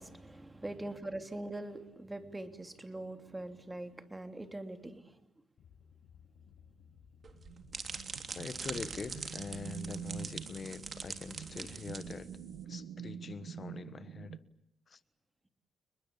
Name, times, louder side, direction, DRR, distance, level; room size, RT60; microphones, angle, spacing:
voice 1, 0.0-5.1, right 1 dB, 15° right, 3.1 m, -43 dB
sound 1, 5.6-12.6, left 7 dB, 65° left, 5.2 m, -60 dB
sound 2, 7.2-12.6, right 5 dB, 40° right, 3.1 m, -43 dB
sound 3, 7.4-14.4, right 8 dB, 85° right, 1.5 m, -46 dB
voice 2, 8.3-12.3 12.7-14.4 14.9-15.0, left 5 dB, 40° left, 1.3 m, -44 dB
30.0 x 21.0 x 8.6 m
cardioid pair, 90°, 0 cm